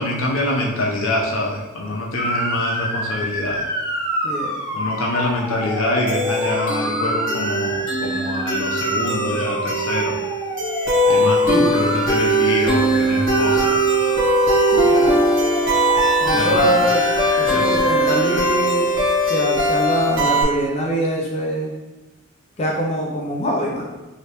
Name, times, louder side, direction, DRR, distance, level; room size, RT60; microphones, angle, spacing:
voice 1, 0.0-3.7 4.7-10.2 11.1-13.8 16.3-16.7 17.5-17.8, left 1 dB, 75° left, -2 dB, 0.7 m, -24 dB
Motor vehicle (road) / Siren, 2.2-18.4, equal, 20° right, 0.9 m, -28 dB
voice 2, 4.2-4.6 14.7-15.2 16.2-18.9 19.2-21.7 22.6-23.9, equal, 30° left, -3 dB, 0.4 m, -24 dB
sound 1, 6.1-20.4, right 1 dB, 60° right, 1.0 m, -20 dB
3.2 x 2.8 x 2.9 m, 1.1 s
head